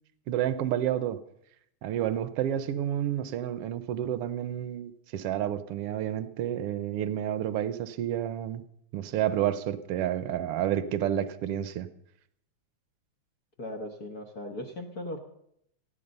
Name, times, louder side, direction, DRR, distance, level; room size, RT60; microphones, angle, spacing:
voice 1, 0.3-1.2 1.8-8.6 8.9-11.9, right 11 dB, 70° right, 13 dB, 1.4 m, -30 dB
voice 2, 13.6-15.2, left 1 dB, 45° left, 4 dB, 1.4 m, -38 dB
18.5 x 14.0 x 5.5 m, 0.73 s
omnidirectional pair, 3.4 m